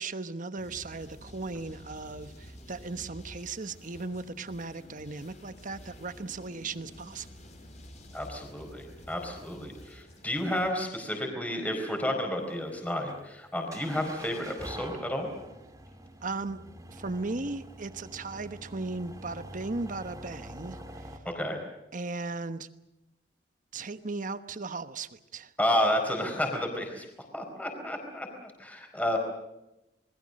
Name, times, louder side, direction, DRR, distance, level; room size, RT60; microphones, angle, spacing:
voice 1, 0.0-7.3 16.2-16.6 16.9-20.8 21.9-22.7 23.7-25.5, right 3 dB, 45° right, 11 dB, 1.1 m, -37 dB
sound 1, 0.6-10.7, equal, 45° left, 4.9 m, -50 dB
voice 2, 8.1-15.3 21.2-21.6 25.6-27.0 27.3-29.2, left 1 dB, 10° left, 3 dB, 4.4 m, -31 dB
sound 2, 12.0-21.2, right 1 dB, 20° right, 2.4 m, -46 dB
27.5 x 21.0 x 6.5 m, 0.93 s
head